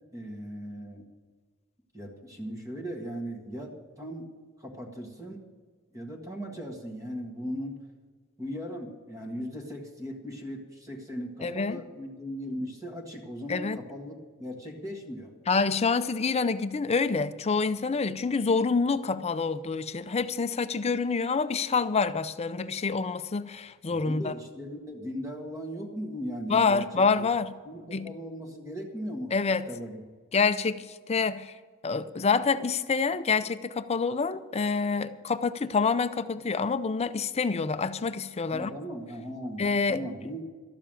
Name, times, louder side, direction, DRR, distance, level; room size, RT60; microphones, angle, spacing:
voice 1, 0.1-1.1 1.9-4.3 4.6-5.4 5.9-7.8 8.4-15.3 23.9-27.3 27.6-29.3 29.7-30.0 38.5-40.4, equal, 15° right, 2 dB, 1.7 m, -38 dB
voice 2, 11.4-11.8 13.5-13.8 15.5-24.3 26.5-27.5 27.9-28.1 29.3-29.6 30.3-31.5 31.8-38.7 39.6-40.0, left 4 dB, 30° left, 12 dB, 0.5 m, -27 dB
12.5 x 7.2 x 8.8 m, 1.5 s
head